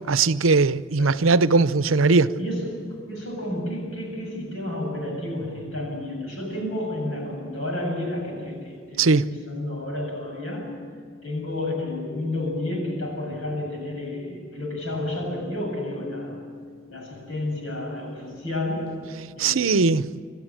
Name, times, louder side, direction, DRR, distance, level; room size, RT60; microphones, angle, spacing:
voice 1, 0.1-2.3 9.0-9.2 19.4-20.1, right 4 dB, 85° right, 0.7 m, -19 dB
voice 2, 1.0-1.4 1.8-10.8 11.2-16.5 16.9-19.8, left 1 dB, 85° left, 7.5 m, -31 dB
28.5 x 13.0 x 9.0 m
head